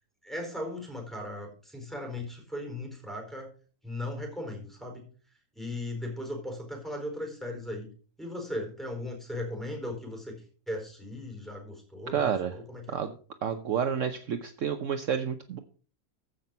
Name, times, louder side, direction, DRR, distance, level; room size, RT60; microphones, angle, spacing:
voice 1, 0.2-3.5 3.8-5.1 5.5-7.9 8.2-10.4 10.7-13.0, left 1 dB, ahead, 2 dB, 4.3 m, -37 dB
voice 2, 12.1-12.5 12.9-13.1 13.4-15.6, right 7 dB, 60° right, 8 dB, 1.1 m, -30 dB
15.0 x 5.9 x 5.4 m, 0.41 s
omnidirectional pair, 1.6 m